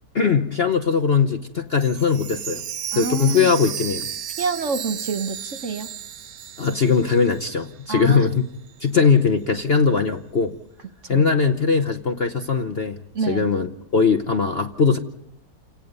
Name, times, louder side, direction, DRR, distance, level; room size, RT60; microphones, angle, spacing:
voice 1, 0.1-2.6 2.9-4.1 6.6-8.4 8.8-10.5 11.1-13.0 13.3-15.0, left 5 dB, 45° left, 5 dB, 0.9 m, -20 dB
Chime, 1.7-7.7 8.0-8.1 8.7-8.8, right 9 dB, 75° right, 1.6 m, -34 dB
voice 2, 2.9-3.5 4.4-5.9 7.9-8.3 11.0-11.3 13.1-13.5, right 4 dB, 50° right, 7 dB, 1.2 m, -27 dB
29.0 x 17.5 x 5.3 m, 0.77 s
omnidirectional pair, 1.9 m